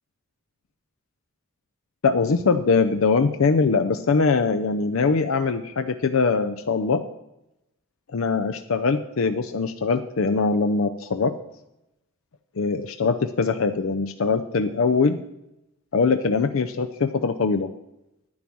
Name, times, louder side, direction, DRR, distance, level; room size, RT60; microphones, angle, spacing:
voice 1, 2.0-7.0 8.1-11.3 12.6-15.2 15.9-17.7, left 4 dB, 80° left, 7 dB, 0.6 m, -22 dB
10.5 x 9.4 x 6.0 m, 0.89 s
head